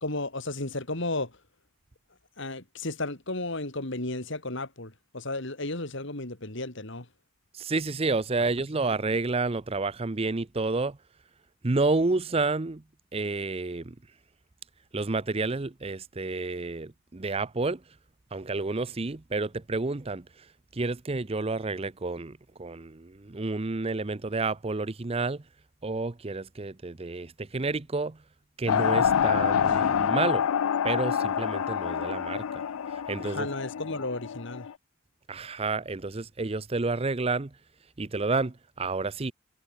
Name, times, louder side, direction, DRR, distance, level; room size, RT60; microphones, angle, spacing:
voice 1, 0.0-1.4 2.4-7.1 33.2-34.7, left 2 dB, 60° left, 3.1 m, -33 dB
voice 2, 7.5-11.0 11.6-12.8 13.1-13.9 14.9-17.8 18.3-20.5 20.7-25.4 25.8-28.2 28.6-30.5 30.8-32.6 32.9-33.5 35.3-37.5 38.0-39.3, right 3 dB, 30° right, 0.6 m, -30 dB
sound 1, 28.7-34.7, left 8 dB, 90° left, 0.4 m, -27 dB
head